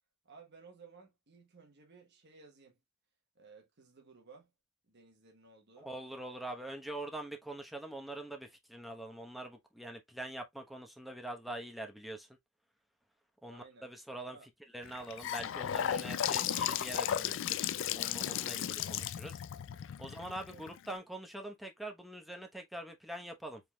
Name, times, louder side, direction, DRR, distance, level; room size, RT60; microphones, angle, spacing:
voice 1, 0.2-2.8 3.3-4.5 4.8-5.9 13.5-13.9 14.3-14.5 20.0-20.1 20.5-20.7, right 4 dB, 55° right, 1.1 m, -57 dB
voice 2, 5.8-12.4 13.4-14.4 14.7-19.4 20.0-23.6, right 1 dB, ahead, 1.0 m, -44 dB
Gurgling / Sink (filling or washing) / Bathtub (filling or washing), 14.8-20.9, left 10 dB, 65° left, 0.4 m, -35 dB
4.7 x 3.7 x 2.3 m
head